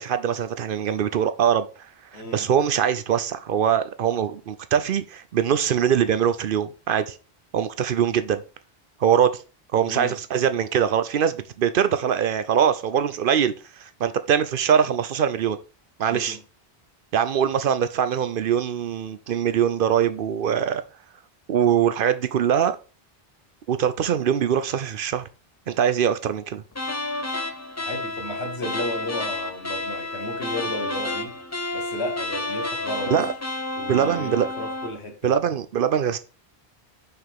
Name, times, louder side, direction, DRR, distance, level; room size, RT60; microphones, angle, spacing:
voice 1, 0.0-1.7 2.1-7.2 7.5-8.4 9.0-9.4 9.7-15.6 16.0-16.4 17.1-20.8 21.5-22.8 23.7-25.2 25.7-26.6 33.1-33.3 33.9-34.5 35.2-36.2, right 8 dB, 65° right, 0.7 m, -22 dB
voice 2, 2.1-2.5 9.8-10.2 16.1-16.4 27.8-31.4 31.7-33.3 33.8-35.3, left 1 dB, 85° left, 1.6 m, -33 dB
sound 1, 26.7-35.0, left 2 dB, 20° left, 0.4 m, -30 dB
5.8 x 5.6 x 3.5 m
omnidirectional pair, 1.1 m